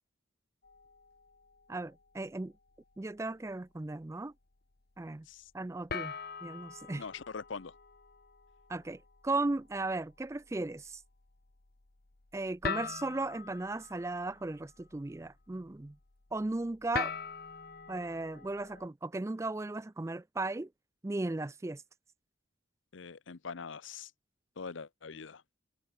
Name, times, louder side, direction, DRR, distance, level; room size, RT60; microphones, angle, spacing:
sound 1, 0.6-2.2 2.6-2.9 3.5-3.6 5.9-18.9, left 5 dB, 50° left, 1.1 m, -44 dB
voice 1, 1.7-2.5 3.0-4.3 5.0-5.3 5.5-6.1 6.4-7.0 8.7-11.0 12.3-16.0 16.3-17.1 17.9-20.7 21.0-21.8, right 2 dB, 15° right, 0.3 m, -36 dB
voice 2, 7.0-7.7 22.9-24.1 24.6-25.4, left 5 dB, 70° left, 0.7 m, -43 dB
head